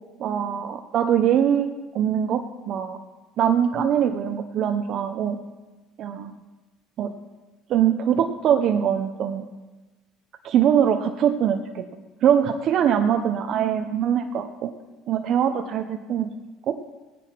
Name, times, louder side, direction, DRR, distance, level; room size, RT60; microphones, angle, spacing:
voice 1, 0.2-1.7 1.9-3.0 3.4-5.4 6.0-6.3 7.0-7.1 7.7-9.5 10.4-11.9 12.2-14.7 15.1-16.3 16.7-16.8, right 9 dB, 55° right, 5 dB, 0.8 m, -22 dB
17.0 x 10.0 x 4.7 m, 1.2 s
supercardioid pair, 105°, 0 cm